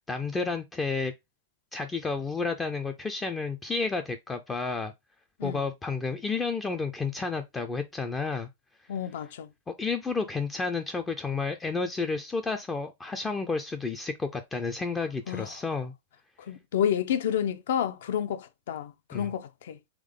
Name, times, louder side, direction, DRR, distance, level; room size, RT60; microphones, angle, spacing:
voice 1, 0.1-1.1 1.7-4.9 5.4-8.5 9.7-15.9 19.1-19.3, left 4 dB, 10° left, 0.3 m, -31 dB
voice 2, 8.9-9.5 15.3-15.5 16.5-19.8, left 9 dB, 65° left, 0.6 m, -30 dB
3.6 x 3.4 x 3.6 m
supercardioid pair, 170°, 0 cm